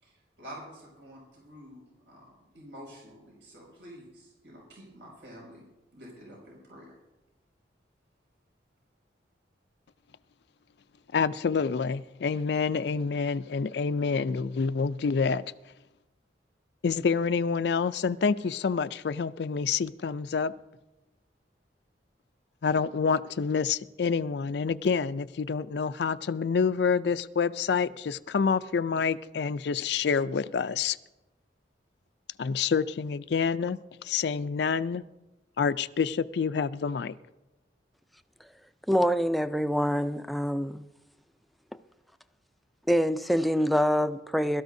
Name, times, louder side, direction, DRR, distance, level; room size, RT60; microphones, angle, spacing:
voice 1, 0.0-5.6 5.9-6.9, equal, 80° right, 5.9 m, -48 dB
voice 2, 11.1-15.4 16.8-20.5 22.6-31.0 32.4-35.0 35.6-37.2, left 5 dB, 65° left, 0.4 m, -27 dB
voice 3, 38.9-40.8 42.9-44.6, equal, ahead, 0.4 m, -25 dB
22.5 x 13.5 x 2.7 m
head